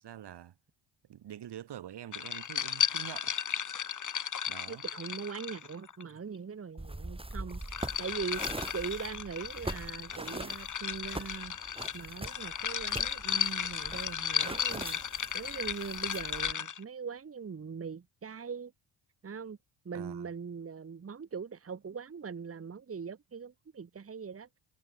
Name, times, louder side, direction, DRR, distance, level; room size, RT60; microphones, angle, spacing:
voice 1, 0.0-0.5 1.1-3.4 3.7-3.8 4.5-4.8 19.9-20.3, right 11 dB, 55° right, 1.9 m, -46 dB
sound 1, 2.1-6.0 7.3-16.8, left 7 dB, 40° left, 1.6 m, -35 dB
voice 2, 4.7-8.4 8.7-11.6 11.9-18.7 19.2-19.6 19.8-24.5, right 6 dB, 30° right, 1.6 m, -41 dB
sound 2, 6.8-16.5, right 1 dB, 10° right, 6.0 m, -43 dB
supercardioid pair, 60°, 48 cm